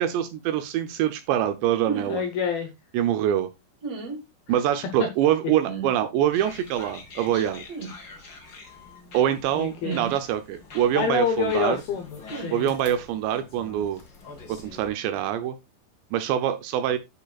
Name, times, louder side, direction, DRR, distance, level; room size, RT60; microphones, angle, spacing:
voice 1, 0.0-2.2 2.9-3.5 4.5-7.6 9.1-11.8 12.5-14.0 14.5-15.5 16.1-17.0, right 11 dB, 80° right, 10 dB, 2.6 m, -24 dB
sound 1, 1.9-2.2 3.8-4.2 5.6-5.9 7.7-7.9 9.8-10.2 12.3-12.5, right 5 dB, 45° right, 2.4 m, -33 dB
voice 2, 2.1-2.7 9.6-10.0 11.0-12.7, left 6 dB, 75° left, 5 dB, 2.3 m, -27 dB
sound 2, 6.3-14.9, left 3 dB, 40° left, 1.7 m, -46 dB
10.0 x 6.5 x 2.3 m, 0.23 s
omnidirectional pair, 5.5 m